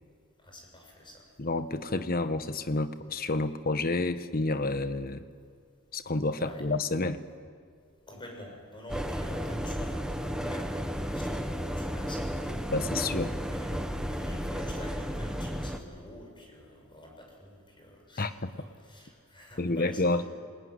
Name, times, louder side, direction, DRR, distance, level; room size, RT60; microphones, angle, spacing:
voice 1, 0.4-1.2 6.4-6.6 8.1-12.6 13.4-18.3 18.5-20.2, left 1 dB, 25° left, 1 dB, 6.6 m, -47 dB
voice 2, 1.4-5.2 5.9-7.2 12.7-13.3 18.2-18.5 19.6-20.2, left 2 dB, 45° left, 10 dB, 1.2 m, -29 dB
sound 1, 8.9-15.8, equal, 5° right, 1.4 m, -33 dB
26.5 x 20.5 x 9.7 m, 2.2 s
head